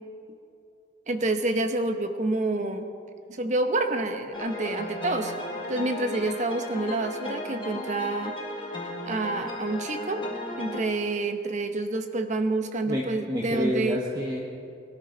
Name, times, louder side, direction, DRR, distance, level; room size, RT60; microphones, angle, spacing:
voice 1, 1.1-2.9 3.3-5.3 5.7-8.3 9.0-10.2 10.6-14.0, right 2 dB, 40° right, 7 dB, 1.0 m, -28 dB
sound 1, 4.3-10.8, left 1 dB, 25° left, 1.8 m, -35 dB
voice 2, 12.9-14.4, equal, 20° right, -3 dB, 1.3 m, -29 dB
22.0 x 13.0 x 4.0 m, 2.5 s
head